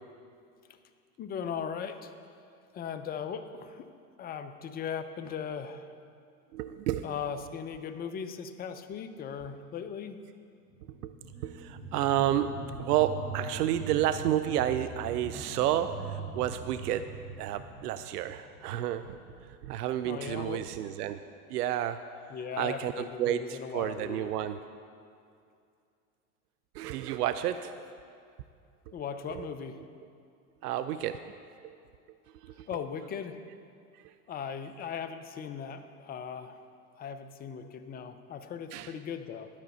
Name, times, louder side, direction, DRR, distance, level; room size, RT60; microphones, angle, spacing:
voice 1, 1.2-2.1 2.7-3.9 4.2-5.9 7.0-10.2 20.0-20.6 22.3-24.3 28.9-29.8 32.7-33.4 34.3-36.6 37.0-39.5, left 7 dB, 20° left, 9 dB, 0.5 m, -38 dB
voice 2, 6.5-7.3 11.0-11.1 11.4-17.0 17.4-19.2 19.6-21.2 21.5-22.0 22.6-24.6 26.7-27.9 29.3-29.5 30.6-31.3 31.6-31.7 32.4-32.7 34.0-34.1 38.7-38.9, right 11 dB, 80° right, 11 dB, 0.5 m, -31 dB
sound 1, 10.7-19.8 20.2-20.3, right 4 dB, 20° right, 2.5 m, -42 dB
12.0 x 5.0 x 6.8 m, 2.4 s
hypercardioid pair, 100°, 46 cm